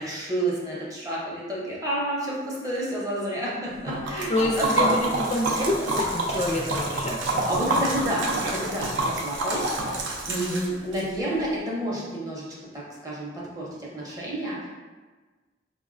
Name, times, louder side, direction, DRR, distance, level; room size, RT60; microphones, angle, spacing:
voice 1, 0.0-5.0 7.5-12.4 12.7-14.7, right 1 dB, 20° right, -5 dB, 0.6 m, -30 dB
Liquid, 3.9-11.0, right 2 dB, 80° right, 0.4 m, -27 dB
voice 2, 4.3-7.4 10.3-10.6, left 1 dB, 35° left, -1 dB, 0.3 m, -27 dB
4.2 x 2.1 x 2.4 m, 1.3 s
head